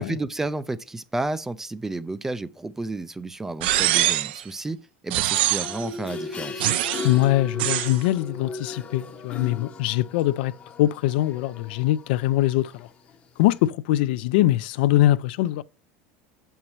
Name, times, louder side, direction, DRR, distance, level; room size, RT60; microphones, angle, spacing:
voice 1, 0.1-6.7, right 2 dB, 5° right, 0.3 m, -31 dB
sound 1, 3.6-4.4 5.1-5.9 6.6-7.1 7.6-8.0, right 15 dB, 85° right, 0.4 m, -23 dB
sound 2, 5.6-13.1 13.6-13.7, left 3 dB, 25° left, 0.8 m, -37 dB
voice 2, 7.0-10.5 10.8-12.9 13.4-15.6, left 15 dB, 70° left, 0.3 m, -22 dB
7.7 x 5.5 x 3.0 m
supercardioid pair, 165°, 6 cm